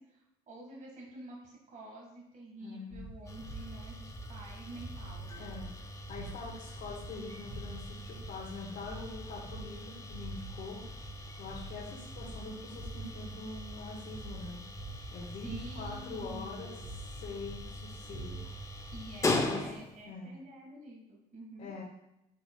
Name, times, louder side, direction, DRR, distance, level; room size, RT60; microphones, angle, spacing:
voice 1, 0.1-5.5 15.4-16.8 18.9-21.7, right 1 dB, 50° right, -3 dB, 1.7 m, -48 dB
voice 2, 2.6-3.0 5.4-11.1 11.4-14.6 15.1-16.7 17.2-18.4 19.3-19.6 20.0-20.3 21.6-21.8, left 3 dB, 65° left, -5 dB, 1.4 m, -44 dB
sound 1, 2.9-19.2, right 1 dB, 35° right, 2.1 m, -46 dB
sound 2, 3.2-20.1, left 2 dB, 20° left, 0.7 m, -41 dB
9.7 x 4.6 x 2.3 m, 0.85 s
cardioid pair, 110°, 17 cm